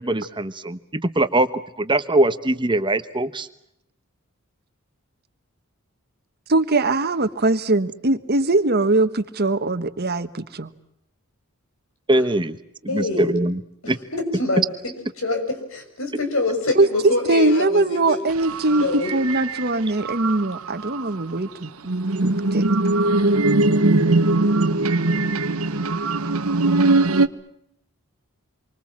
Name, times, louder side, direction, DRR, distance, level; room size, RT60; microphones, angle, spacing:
voice 1, 0.0-1.5 1.9-3.5 12.1-12.6 12.9-13.6 13.9-14.0, right 1 dB, 20° right, 10 dB, 1.1 m, -21 dB
voice 2, 6.5-10.7 16.7-21.7 22.2-22.7, right 2 dB, 45° right, 10 dB, 1.4 m, -21 dB
voice 3, 12.9-13.3 13.8-18.2 18.7-19.1, left 2 dB, 65° left, 6 dB, 6.8 m, -26 dB
sound 1, 18.3-19.7 20.0-21.0 21.9-27.3, right 2 dB, 75° right, 1.3 m, -20 dB
28.0 x 24.5 x 7.4 m, 0.77 s
head